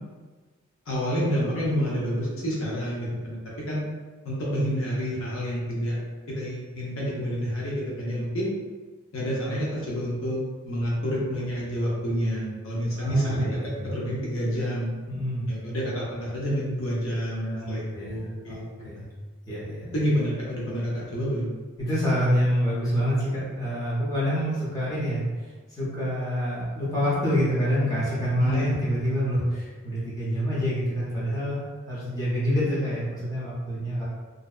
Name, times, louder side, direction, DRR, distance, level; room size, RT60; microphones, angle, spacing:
voice 1, 0.9-3.8 4.2-6.0 6.3-8.5 9.1-14.9 15.5-18.6 19.9-21.5 28.4-28.8, equal, 65° left, -5 dB, 0.6 m, -28 dB
voice 2, 12.9-13.9 15.1-15.5 17.4-18.2 18.4-19.1 19.5-20.0 21.8-34.0, equal, 15° left, -9 dB, 0.7 m, -27 dB
2.6 x 2.1 x 2.3 m, 1.3 s
head